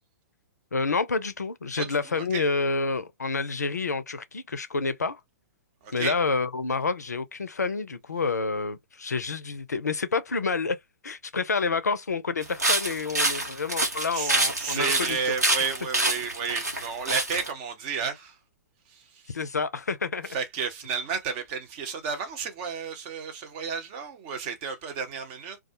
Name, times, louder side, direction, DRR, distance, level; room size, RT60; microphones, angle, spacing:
voice 1, 0.7-5.2 5.9-10.8 11.0-15.2 19.3-20.4, left 4 dB, 80° left, 0.4 m, -28 dB
voice 2, 1.8-2.4 5.8-6.1 14.1-18.4 18.9-19.3 20.3-25.6, right 6 dB, 35° right, 0.8 m, -32 dB
sound 1, 12.4-17.5, right 2 dB, 85° right, 1.0 m, -26 dB
2.3 x 2.0 x 2.7 m
figure-of-eight pair, 115°, 9 cm